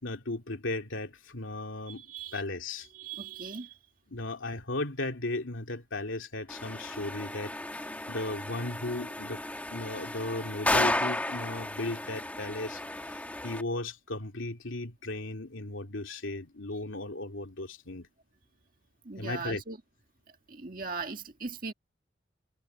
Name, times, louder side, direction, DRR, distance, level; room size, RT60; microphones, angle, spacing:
voice 1, 0.0-2.1 2.3-2.9 4.1-7.5 8.1-9.4 9.7-12.8 13.1-18.1 19.2-19.6, left 2 dB, 80° left, 2.6 m, -36 dB
voice 2, 1.9-2.4 2.9-3.8 19.1-19.8 20.5-21.7, right 4 dB, 45° right, 1.8 m, -39 dB
sound 1, 6.5-13.6, left 1 dB, 10° left, 1.5 m, -33 dB
head